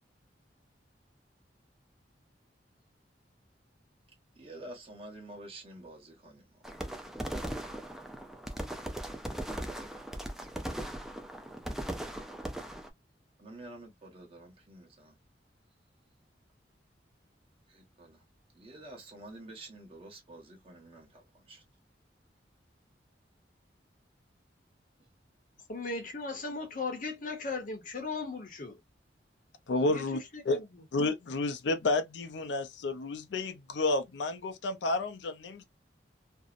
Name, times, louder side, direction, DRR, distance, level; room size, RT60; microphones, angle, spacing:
voice 1, 4.4-6.4 13.4-15.1 17.7-18.2 18.5-21.6, right 1 dB, 30° right, 0.9 m, -49 dB
sound 1, 6.6-12.9, right 1 dB, ahead, 0.3 m, -38 dB
voice 2, 25.7-28.8 29.8-30.1 30.3-30.6, left 3 dB, 50° left, 0.7 m, -37 dB
voice 3, 29.7-30.6 30.9-35.6, left 2 dB, 85° left, 0.5 m, -31 dB
2.6 x 2.0 x 2.4 m
head